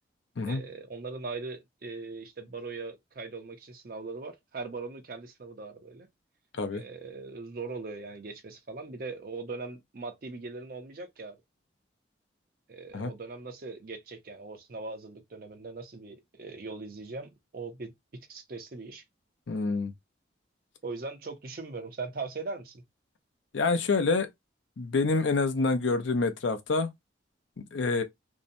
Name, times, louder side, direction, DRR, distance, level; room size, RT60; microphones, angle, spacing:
voice 1, 0.5-6.1 6.7-11.4 12.7-17.9 18.3-19.0 20.8-22.8, right 3 dB, 50° right, 0.5 m, -40 dB
voice 2, 19.5-19.9 23.5-24.3 24.8-26.9 27.7-28.0, left 3 dB, 75° left, 0.5 m, -27 dB
2.7 x 2.1 x 2.6 m
head